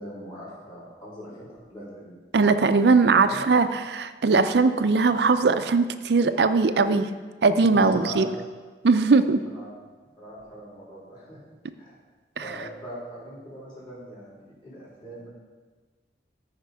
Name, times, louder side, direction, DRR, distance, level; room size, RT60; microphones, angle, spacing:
voice 1, 0.0-2.2 3.1-3.4 7.7-8.4 9.4-9.7 10.2-11.4 11.8-12.0 12.4-15.3, equal, 25° left, -7 dB, 3.5 m, -40 dB
voice 2, 2.3-7.1 7.4-8.3 8.8-9.4, right 4 dB, 70° right, 10 dB, 0.5 m, -20 dB
13.5 x 5.1 x 4.8 m, 1.4 s
head